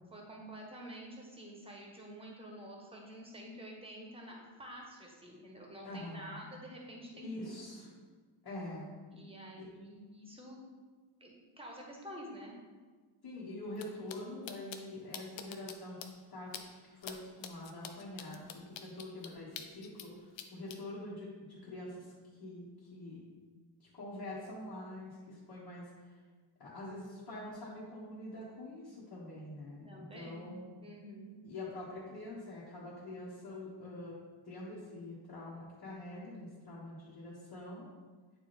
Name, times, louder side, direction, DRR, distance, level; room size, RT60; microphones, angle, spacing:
voice 1, 0.1-7.9 9.1-10.6 11.2-12.5 29.8-30.5 30.8-31.4, equal, 10° right, -1 dB, 1.2 m, -49 dB
voice 2, 5.8-6.4 7.1-7.9 8.4-8.9 9.5-9.6 13.2-16.0 16.3-20.1 20.5-22.1 22.4-23.2 23.9-26.2 26.6-30.6 31.4-34.2 34.4-37.9, left 1 dB, 50° left, -9 dB, 1.7 m, -45 dB
sound 1, 13.7-13.8 14.1-14.2 14.5-14.8 15.1-15.7 16.0-16.1 16.5-16.6 17.0-17.1 17.4-20.1 20.4-20.8, left 8 dB, 65° left, 0.7 m, -45 dB
9.0 x 3.3 x 4.4 m, 1.4 s
wide cardioid pair, 140°, 48 cm